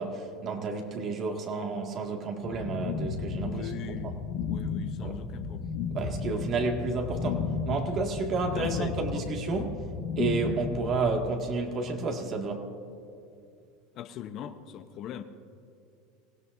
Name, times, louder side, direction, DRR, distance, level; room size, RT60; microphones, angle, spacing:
voice 1, 0.0-4.1 5.0-5.2 5.9-9.9 10.2-12.7, right 3 dB, 40° right, 2.0 m, -31 dB
sound 1, 2.4-11.0, left 5 dB, 75° left, 2.2 m, -33 dB
voice 2, 3.4-4.1 4.5-5.7 8.4-9.3 13.9-15.2, left 9 dB, 50° left, 0.8 m, -40 dB
24.0 x 16.5 x 2.7 m
hypercardioid pair, 100°, 0 cm